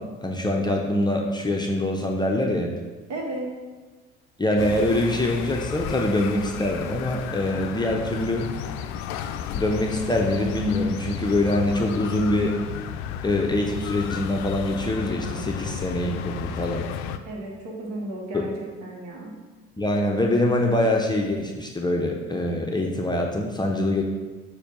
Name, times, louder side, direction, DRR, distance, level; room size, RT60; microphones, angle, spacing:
voice 1, 0.0-2.7 4.4-8.5 9.5-12.6 13.2-16.9 18.3-18.5 19.8-24.0, left 1 dB, 15° left, 0 dB, 0.7 m, -24 dB
voice 2, 3.1-3.5 17.3-18.5 18.8-19.3, right 1 dB, 55° right, -1 dB, 1.5 m, -33 dB
sound 1, 4.6-17.2, left 8 dB, 55° left, 0.5 m, -33 dB
6.4 x 2.8 x 5.3 m, 1.3 s
figure-of-eight pair, 55°, 33 cm